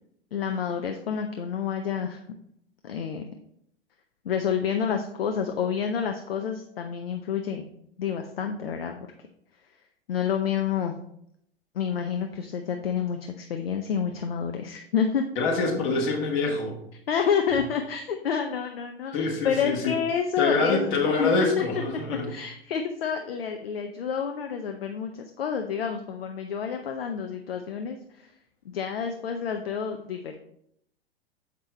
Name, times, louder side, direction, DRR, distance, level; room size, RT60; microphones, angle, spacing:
voice 1, 0.3-2.2 2.8-3.2 4.2-7.7 8.0-9.0 10.1-11.0 11.7-15.2 17.1-20.9 21.2-21.6 22.1-28.3 28.7-30.4, left 7 dB, 70° left, 5 dB, 0.6 m, -29 dB
voice 2, 15.3-16.8 19.1-19.9 20.4-22.3, left 3 dB, 50° left, 0 dB, 1.7 m, -25 dB
6.7 x 5.2 x 3.2 m, 0.73 s
figure-of-eight pair, 90°, 31 cm